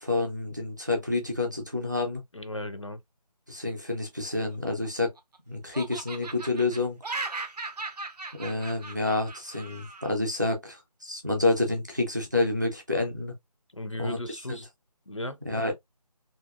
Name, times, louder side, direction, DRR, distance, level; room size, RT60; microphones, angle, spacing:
voice 1, 0.0-2.2 3.5-5.1 5.5-7.0 8.4-13.3 14.0-14.6 15.5-15.7, left 2 dB, 30° right, 0.6 m, -28 dB
voice 2, 2.3-3.0 13.7-14.7 15.1-15.6, left 1 dB, 50° left, 0.4 m, -36 dB
Laughter, 4.5-5.4 5.7-10.1, right 3 dB, 75° right, 0.6 m, -38 dB
2.8 x 2.7 x 2.3 m
figure-of-eight pair, 175°, 21 cm